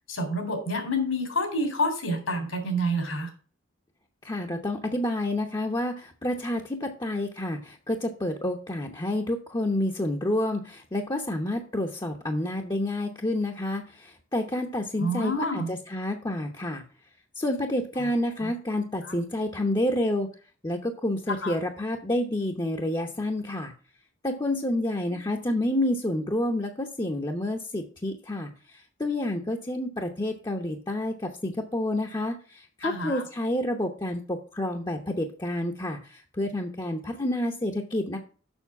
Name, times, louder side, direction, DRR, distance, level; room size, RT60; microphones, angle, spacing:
voice 1, 0.1-3.3 15.0-15.7 18.0-18.1 18.4-18.5 19.0-19.2 21.3-21.6 32.8-33.2, equal, 85° left, 5 dB, 3.7 m, -28 dB
voice 2, 4.2-16.8 17.4-20.3 20.6-23.7 24.2-28.5 29.0-38.2, left 1 dB, 20° left, 1 dB, 0.8 m, -29 dB
7.1 x 6.5 x 5.8 m, 0.39 s
head